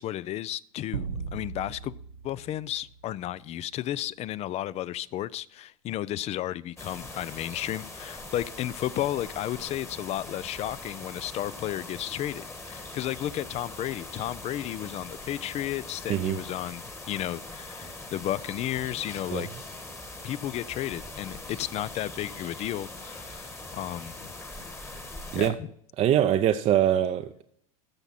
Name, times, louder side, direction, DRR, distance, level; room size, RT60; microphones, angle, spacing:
voice 1, 0.0-1.9 2.2-19.5 20.2-24.3 25.4-25.7, left 13 dB, 35° left, 0.4 m, -33 dB
sound 1, 0.9-3.5, right 6 dB, 75° right, 0.9 m, -38 dB
sound 2, 6.8-25.5, left 2 dB, 15° left, 1.4 m, -42 dB
voice 2, 26.0-27.4, right 11 dB, 35° right, 0.6 m, -23 dB
14.5 x 5.9 x 4.2 m
hypercardioid pair, 85°, 19 cm